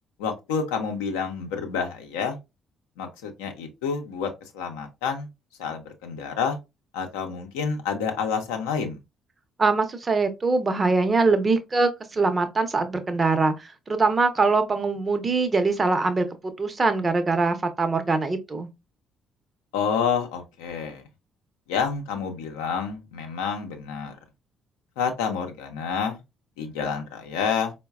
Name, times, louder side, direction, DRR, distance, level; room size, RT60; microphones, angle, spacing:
voice 1, 0.2-2.4 3.0-5.3 5.6-6.6 6.9-9.0 19.7-21.0 21.7-24.2 25.0-26.2 26.6-27.7, left 6 dB, 80° left, 0.6 m, -28 dB
voice 2, 9.6-18.7, right 3 dB, 35° right, 0.7 m, -23 dB
4.5 x 2.1 x 2.3 m
hypercardioid pair, 50°, 0 cm